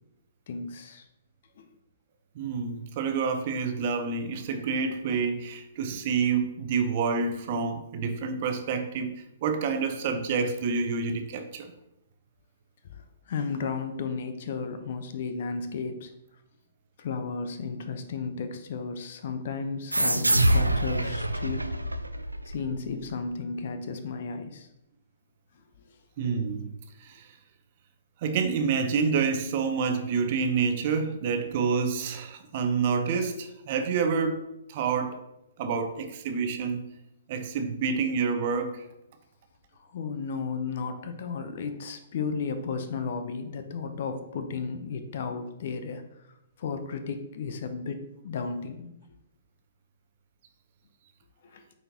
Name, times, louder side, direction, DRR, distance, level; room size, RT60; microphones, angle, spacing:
voice 1, 0.5-1.1 1.6-1.7 5.9-6.0 12.8-16.1 17.0-21.7 22.4-24.7 25.9-26.0 39.7-46.3 46.6-49.0 51.4-51.6, left 5 dB, 50° left, 0.7 m, -34 dB
voice 2, 2.3-11.7 26.2-26.7 27.0-27.3 28.2-34.4 34.7-35.2 35.6-36.8 37.3-38.8, right 5 dB, 40° right, 0.8 m, -28 dB
sound 1, 19.9-23.1, right 1 dB, 85° right, 0.4 m, -26 dB
8.7 x 4.2 x 2.9 m
figure-of-eight pair, 120°, 0 cm